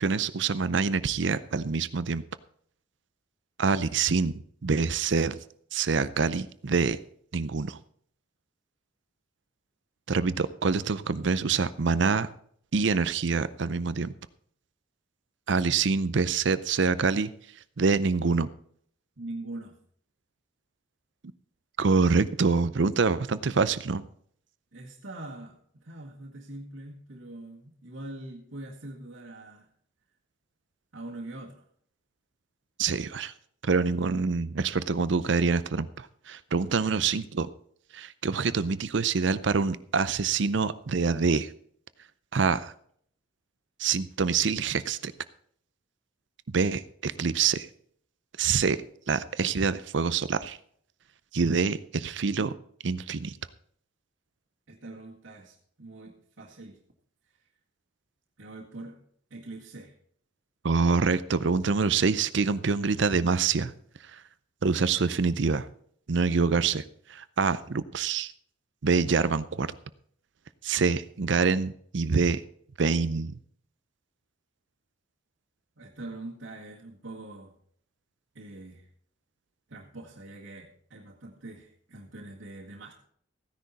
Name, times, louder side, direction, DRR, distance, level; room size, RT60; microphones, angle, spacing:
voice 1, 0.0-2.2 3.6-4.3 4.6-5.4 5.7-7.0 7.3-7.8 10.1-12.3 12.7-14.1 15.5-17.3 17.8-18.5 21.8-24.1 32.8-33.3 33.6-37.5 37.9-41.5 42.3-42.7 43.8-45.1 46.5-47.7 48.4-48.8 49.1-50.6 51.3-52.5 52.8-53.3 60.6-63.7 64.6-65.7 66.1-66.8 67.1-68.3 68.8-69.7 70.6-72.4 72.8-73.3, right 4 dB, 65° right, 15 dB, 0.6 m, -26 dB
voice 2, 19.2-19.7 24.7-29.7 30.9-31.6 36.8-37.0 54.7-56.8 58.4-59.0 59.3-59.9 75.8-77.5 78.3-78.9 79.7-82.9, right 2 dB, 85° right, -5 dB, 1.9 m, -43 dB
15.0 x 10.5 x 4.1 m, 0.62 s
head